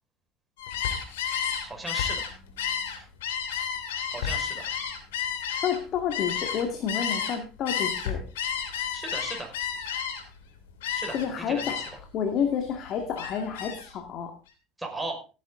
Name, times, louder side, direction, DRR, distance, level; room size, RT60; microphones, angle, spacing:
Gull seagull, 0.6-7.4 7.6-10.4 10.8-11.3 11.6-12.0 12.4-13.9, left 7 dB, 90° left, 2.9 m, -31 dB
voice 1, 1.6-2.3 4.1-4.6 8.9-9.5 10.9-11.7 14.8-15.2, right 2 dB, 10° right, 1 dB, 5.4 m, -37 dB
voice 2, 5.6-8.2 11.1-11.8 12.1-14.3, left 7 dB, 50° left, 5 dB, 2.1 m, -29 dB
16.0 x 9.7 x 3.8 m, 0.33 s
supercardioid pair, 95°, 0 cm